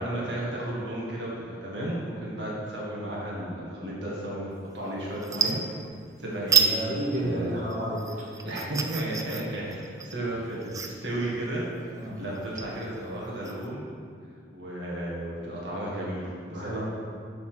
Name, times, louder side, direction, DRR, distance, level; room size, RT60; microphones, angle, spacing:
voice 1, 0.0-5.6 6.2-6.7 7.2-7.6 8.4-11.6 12.0-13.8 14.5-16.8, right 1 dB, 80° right, -5 dB, 1.9 m, -33 dB
sound 1, 4.6-4.9 5.2-6.1 6.5-6.8 7.1-13.7, right 6 dB, 20° right, 0.4 m, -29 dB
voice 2, 6.7-8.0 11.9-12.2 16.5-16.8, right 1 dB, 45° right, -7 dB, 1.7 m, -31 dB
6.5 x 5.8 x 5.9 m, 2.1 s
head